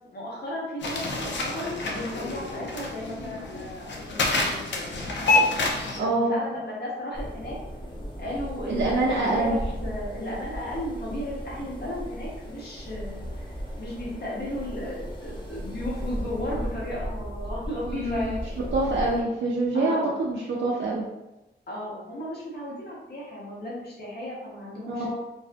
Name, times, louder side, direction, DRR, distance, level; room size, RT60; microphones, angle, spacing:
voice 1, 0.1-5.4 6.0-7.6 8.2-18.4 19.7-20.1 21.7-25.1, left 1 dB, 65° left, -6 dB, 0.9 m, -35 dB
sound 1, 0.8-6.0, left 2 dB, 85° left, 0.5 m, -27 dB
voice 2, 5.9-6.4 8.7-9.6 17.9-18.4 18.7-21.1 24.9-25.1, right 2 dB, 90° right, -4 dB, 0.4 m, -25 dB
sound 2, 7.1-19.2, equal, 25° left, 0.6 m, -36 dB
2.6 x 2.3 x 2.5 m, 0.98 s
wide cardioid pair, 105°, 18 cm